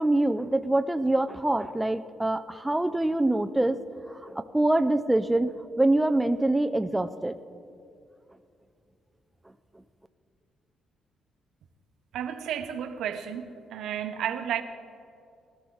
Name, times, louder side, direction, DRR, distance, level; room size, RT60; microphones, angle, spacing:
voice 1, 0.0-3.8 4.1-7.4, right 1 dB, 10° right, 0.4 m, -25 dB
voice 2, 12.1-14.6, right 9 dB, 80° right, 1.0 m, -32 dB
20.0 x 12.5 x 3.9 m
cardioid pair, 135°, 0 cm